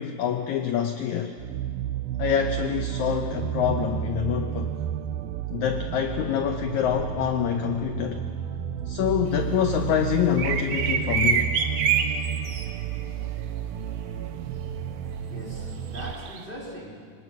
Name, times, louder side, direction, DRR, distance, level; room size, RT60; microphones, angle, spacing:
voice 1, 0.0-1.4 2.2-4.7 5.5-8.2 8.9-11.5, left 9 dB, 75° left, 6 dB, 1.8 m, -26 dB
sound 1, 1.4-16.1, right 10 dB, 90° right, 2.6 m, -32 dB
sound 2, 10.4-12.6 15.9-16.4, right 6 dB, 65° right, 1.4 m, -25 dB
voice 2, 14.9-17.1, equal, 15° right, -3 dB, 2.9 m, -42 dB
23.5 x 20.0 x 6.2 m, 2.2 s
omnidirectional pair, 4.1 m